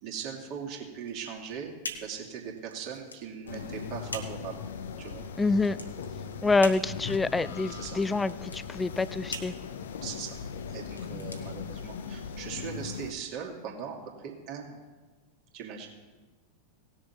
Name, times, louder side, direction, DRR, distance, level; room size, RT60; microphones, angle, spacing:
voice 1, 0.0-4.5 5.0-5.2 7.7-8.0 10.0-10.3 10.7-14.8 15.5-15.9, right 7 dB, 45° right, -1 dB, 2.5 m, -39 dB
sound 1, 1.0-12.3, left 1 dB, 80° left, 1.3 m, -44 dB
sound 2, 3.5-13.1, left 6 dB, 60° left, 0.7 m, -39 dB
voice 2, 5.4-5.8 6.4-9.5, left 3 dB, 10° left, 18 dB, 0.4 m, -26 dB
18.0 x 6.8 x 4.4 m, 1.3 s
figure-of-eight pair, 90°, 0 cm